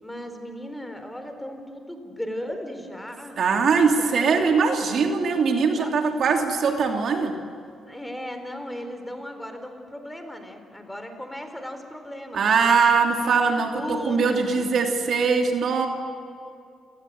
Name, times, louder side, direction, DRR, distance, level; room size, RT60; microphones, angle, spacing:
voice 1, 0.0-3.4 4.0-4.3 4.8-5.2 5.8-5.9 7.8-13.0 13.5-14.7, left 1 dB, 10° left, 7 dB, 4.3 m, -36 dB
voice 2, 3.4-7.4 12.3-15.9, right 5 dB, 60° right, 3 dB, 2.9 m, -21 dB
28.5 x 18.5 x 9.4 m, 2.4 s
supercardioid pair, 70°, 0 cm